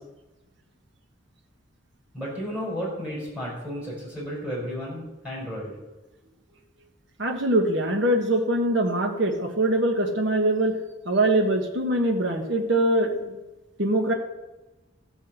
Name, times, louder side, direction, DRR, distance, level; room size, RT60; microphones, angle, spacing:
voice 1, 2.1-5.7, equal, 5° right, -5 dB, 5.4 m, -33 dB
voice 2, 7.2-10.8 11.0-13.4 13.8-14.1, right 1 dB, 60° right, 3 dB, 1.4 m, -23 dB
15.0 x 5.5 x 7.7 m, 1.1 s
head